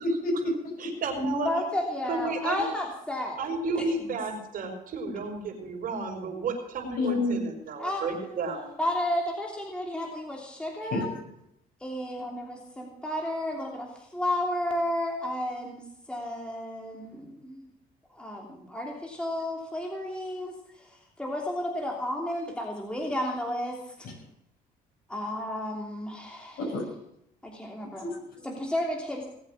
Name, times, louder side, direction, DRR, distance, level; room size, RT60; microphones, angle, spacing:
voice 1, 0.0-0.7 7.0-7.4 10.9-11.2 24.0-24.1 26.6-26.9 27.9-28.5, left 2 dB, 60° left, 1 dB, 7.5 m, -29 dB
voice 2, 0.8-1.5 2.1-2.6 3.4-8.7, right 3 dB, 55° right, 3 dB, 5.1 m, -32 dB
voice 3, 1.4-3.4 3.7-3.9 7.8-8.2 8.8-11.1 11.8-17.7 18.1-23.8 25.1-26.6 27.4-28.1 28.4-29.3, left 1 dB, 5° left, 0 dB, 3.1 m, -32 dB
19.0 x 8.3 x 7.4 m, 0.75 s
cardioid pair, 110°, 17 cm